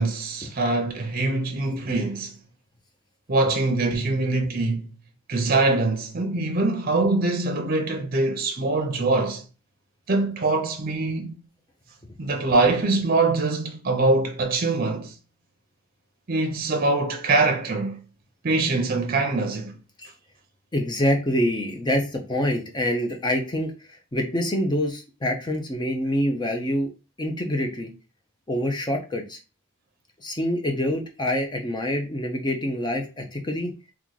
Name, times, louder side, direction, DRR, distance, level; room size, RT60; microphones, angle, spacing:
voice 1, 0.0-2.3 3.3-4.9 5.3-9.4 10.1-11.4 12.2-15.1 16.3-18.0 18.4-19.7, right 3 dB, 40° right, 0.6 m, -23 dB
voice 2, 20.7-23.7 24.1-26.9 27.2-27.9 28.5-29.4 30.2-33.7, left 1 dB, 20° left, 0.6 m, -26 dB
3.1 x 2.3 x 3.8 m
head